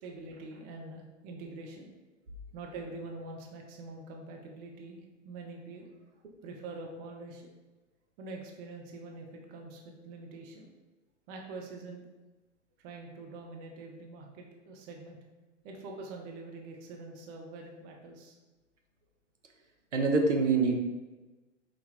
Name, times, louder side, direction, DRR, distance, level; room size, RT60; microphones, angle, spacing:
voice 1, 0.0-1.9 2.5-6.1 6.4-7.5 8.2-10.7 11.3-12.1 12.8-15.2 15.6-18.4, right 3 dB, 25° right, 1 dB, 0.7 m, -45 dB
voice 2, 19.9-20.8, right 4 dB, 75° right, 2 dB, 0.8 m, -25 dB
5.0 x 2.3 x 4.0 m, 1.2 s
figure-of-eight pair, 100°, 37 cm